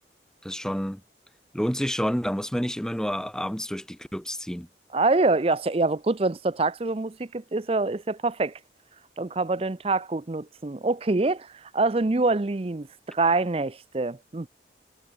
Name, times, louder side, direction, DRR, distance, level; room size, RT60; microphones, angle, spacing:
voice 1, 0.4-1.0 1.5-4.7, equal, 5° left, 1.2 m, -29 dB
voice 2, 4.9-8.5 9.2-14.5, right 3 dB, 35° right, 0.5 m, -25 dB
head